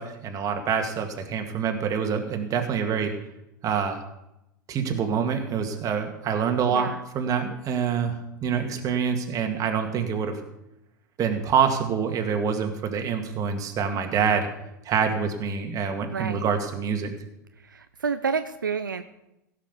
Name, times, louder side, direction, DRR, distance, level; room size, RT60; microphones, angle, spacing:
voice 1, 0.0-3.1 3.6-4.0 4.7-6.9 7.1-8.2 8.4-10.3 11.2-14.5 14.9-17.1, right 6 dB, 35° right, 4 dB, 2.1 m, -26 dB
voice 2, 6.7-7.0 16.1-16.5 17.7-19.0, right 5 dB, 85° right, 10 dB, 0.6 m, -29 dB
16.0 x 6.7 x 6.8 m, 0.88 s
figure-of-eight pair, 90°, 10 cm